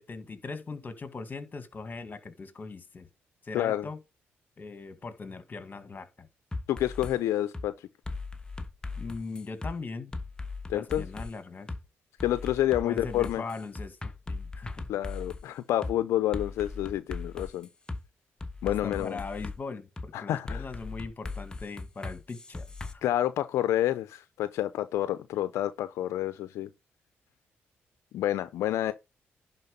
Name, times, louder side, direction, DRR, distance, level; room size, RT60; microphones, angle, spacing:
voice 1, 0.0-3.1 3.4-4.0 4.6-6.3 9.0-10.1 10.7-11.7 12.8-14.0 14.3-14.9 18.6-23.0, left 4 dB, 40° left, 2.0 m, -40 dB
voice 2, 3.5-3.9 6.7-7.7 10.7-11.0 12.2-13.4 14.9-17.7 18.6-19.2 20.1-20.6 23.0-26.7 28.1-28.9, left 13 dB, 85° left, 0.5 m, -28 dB
sound 1, 6.5-7.1 7.5-7.7 8.0-9.7 10.1-11.3 11.7-11.8 12.2-15.4 15.8-15.9 16.3-18.0 18.4-19.6 20.0-20.1 20.5-22.9, left 3 dB, 20° left, 1.3 m, -38 dB
11.0 x 4.4 x 5.3 m
cardioid pair, 65°, 5 cm